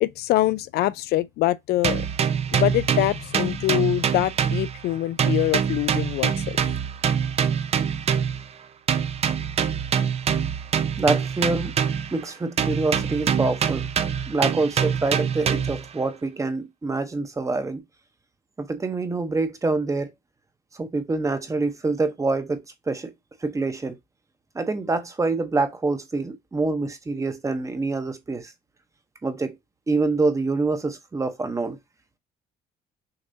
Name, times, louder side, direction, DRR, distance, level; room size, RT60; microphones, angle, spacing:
voice 1, 0.0-2.0 2.5-6.6, left 15 dB, 70° left, 0.4 m, -24 dB
sound 1, 1.8-4.9 5.2-8.5 8.9-12.2 12.6-15.9, right 7 dB, 40° right, 0.5 m, -25 dB
voice 2, 11.0-11.7 12.1-13.8 14.3-17.8 18.6-20.1 20.7-23.1 23.4-24.0 24.5-28.5 29.2-29.6 29.9-31.8, right 3 dB, 20° right, 0.8 m, -26 dB
6.6 x 2.9 x 2.7 m
cardioid pair, 110°, 17 cm